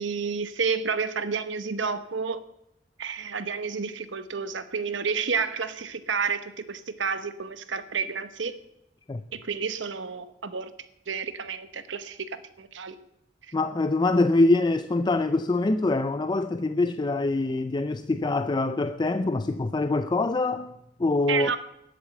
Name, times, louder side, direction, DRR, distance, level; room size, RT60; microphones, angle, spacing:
voice 1, 0.0-2.4 3.0-8.5 9.3-10.7 11.1-12.9 21.3-21.6, right 5 dB, 75° right, 0.9 m, -30 dB
voice 2, 13.5-21.5, left 2 dB, 25° left, 0.4 m, -24 dB
10.5 x 8.6 x 7.6 m
head